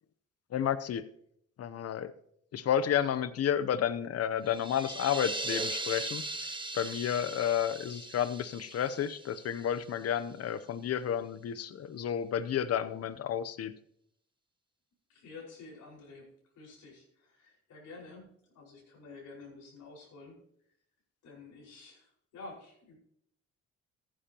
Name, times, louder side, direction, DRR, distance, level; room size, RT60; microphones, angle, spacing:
voice 1, 0.5-1.0 1.6-2.1 2.5-6.2 6.7-13.7, left 9 dB, 55° left, 15 dB, 0.8 m, -31 dB
sound 1, 4.5-10.1, right 2 dB, 15° right, 1.0 m, -39 dB
voice 2, 15.1-16.3 16.6-20.4 21.2-23.0, left 3 dB, 75° left, -3 dB, 5.2 m, -50 dB
14.5 x 10.0 x 2.9 m, 0.72 s
cardioid pair, 90°, 30 cm